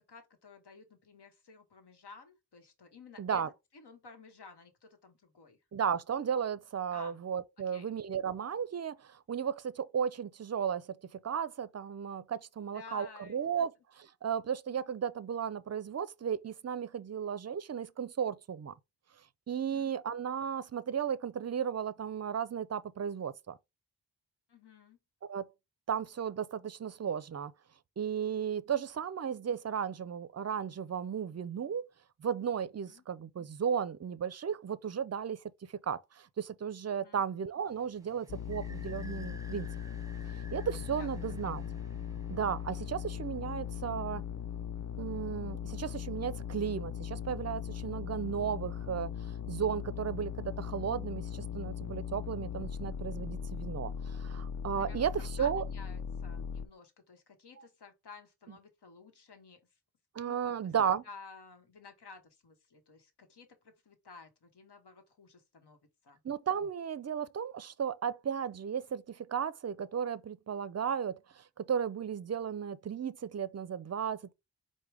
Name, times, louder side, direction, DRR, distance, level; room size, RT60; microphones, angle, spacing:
voice 1, 0.1-3.4 3.7-5.6 6.9-7.2 7.7-7.9 12.6-13.7 19.7-20.0 24.5-25.0 32.9-33.0 37.0-37.2 40.9-41.6 54.7-55.1 55.4-59.6 60.2-60.7 61.0-66.2, left 4 dB, 75° left, 1.1 m, -54 dB
voice 2, 3.2-3.5 5.7-13.7 14.2-18.7 19.5-23.6 25.2-25.5 25.9-27.5 28.0-31.9 32.2-35.4 35.8-39.7 40.5-41.6 42.3-44.2 45.0-49.1 49.5-55.6 57.6-57.7 60.1-61.0 66.2-74.3, right 8 dB, 40° right, 0.4 m, -35 dB
sound 1, 37.7-45.0, right 2 dB, 10° right, 0.9 m, -56 dB
sound 2, 38.3-56.7, left 8 dB, 45° left, 0.5 m, -39 dB
4.8 x 2.2 x 4.6 m
cardioid pair, 55°, 41 cm